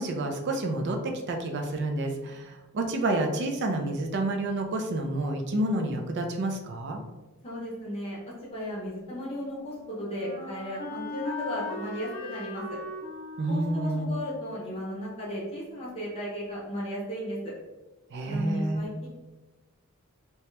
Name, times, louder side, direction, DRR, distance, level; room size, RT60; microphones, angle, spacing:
voice 1, 0.0-7.0 13.4-14.1 18.1-18.9, right 1 dB, 50° right, 3 dB, 0.4 m, -29 dB
voice 2, 7.4-12.8 13.5-17.5 18.3-19.1, equal, 25° left, -6 dB, 0.7 m, -35 dB
Wind instrument woodwind instrument, 9.0-15.9, left 2 dB, 85° left, 0.7 m, -40 dB
2.8 x 2.2 x 3.1 m, 1.1 s
head